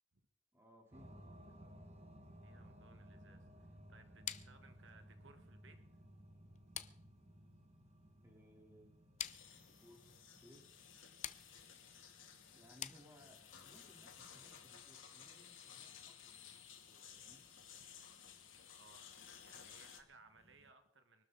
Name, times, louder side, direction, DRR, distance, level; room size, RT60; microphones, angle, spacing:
voice 1, 0.5-1.7 8.2-9.2 9.6-10.7 12.5-16.6 16.9-17.4, equal, 15° right, 0 dB, 3.5 m, -64 dB
sound 1, 0.9-20.7, equal, 35° right, 1.8 m, -62 dB
voice 2, 2.4-5.8 18.7-19.1 19.4-21.2, right 4 dB, 70° right, 7 dB, 1.6 m, -64 dB
sound 2, 4.3-13.6, left 10 dB, 40° left, 0.6 m, -51 dB
sound 3, 9.2-20.0, left 8 dB, 90° left, 2.6 m, -57 dB
24.0 x 12.5 x 4.0 m, 0.70 s
head